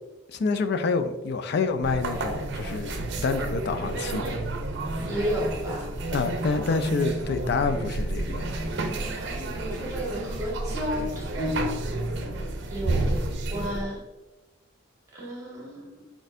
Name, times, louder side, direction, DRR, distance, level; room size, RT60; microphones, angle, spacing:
voice 1, 0.3-4.4 6.1-8.5, left 4 dB, 55° left, 9 dB, 0.4 m, -27 dB
sound 1, 1.8-13.8, right 2 dB, 60° right, 0.5 m, -31 dB
voice 2, 5.1-5.9 9.2-11.9 12.7-13.1 13.5-14.0 15.1-16.1, equal, 15° right, -4 dB, 1.5 m, -32 dB
4.5 x 4.1 x 2.6 m, 1.1 s
head